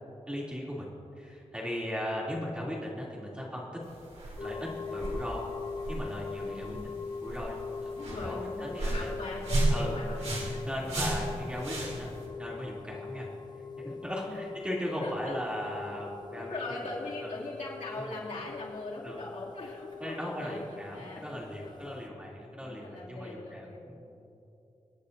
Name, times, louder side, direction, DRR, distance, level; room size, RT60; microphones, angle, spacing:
voice 1, 0.3-0.9 1.1-3.7 4.4-5.4 5.9-6.8 7.2-7.6 7.8-9.1 9.7-10.0 10.6-12.1 12.4-13.3 13.8-17.3 18.0-18.1 19.0-19.2 20.0-24.1, equal, 10° right, -5 dB, 2.9 m, -37 dB
sound 1, 3.8-12.3, right 1 dB, 65° right, 3.1 m, -34 dB
sound 2, 4.4-22.1, left 5 dB, 35° left, 0.6 m, -42 dB
voice 2, 6.4-7.0 7.9-11.3 15.0-15.3 16.3-22.0 22.6-23.9, left 2 dB, 85° left, -6 dB, 2.7 m, -41 dB
26.0 x 9.8 x 2.7 m, 2.9 s
wide cardioid pair, 80°, 12 cm